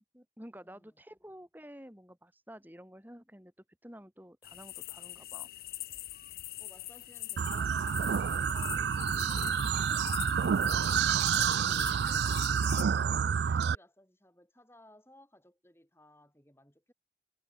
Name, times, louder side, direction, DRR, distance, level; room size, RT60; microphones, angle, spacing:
voice 1, 0.0-3.5 3.8-5.5, equal, 10° right, 7.3 m, -51 dB
voice 2, 0.6-0.9 6.6-16.9, left 1 dB, 15° left, 6.7 m, -60 dB
sound 1, 4.4-12.8, left 16 dB, 55° left, 0.7 m, -43 dB
sound 2, 7.4-13.8, right 7 dB, 75° right, 0.4 m, -29 dB
head